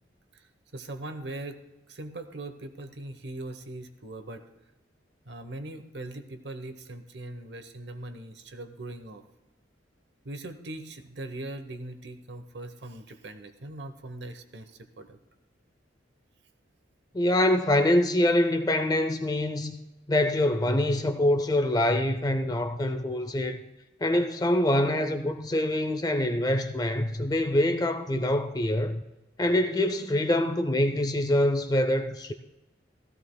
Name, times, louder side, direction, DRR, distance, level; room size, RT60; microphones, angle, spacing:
voice 1, 0.3-1.6 1.9-4.5 5.2-9.2 10.2-15.2, right 2 dB, 60° right, 1.0 m, -40 dB
voice 2, 17.1-19.7 20.1-23.6 24.0-29.0 29.4-32.3, left 1 dB, 20° left, 0.5 m, -25 dB
16.0 x 15.0 x 2.2 m
head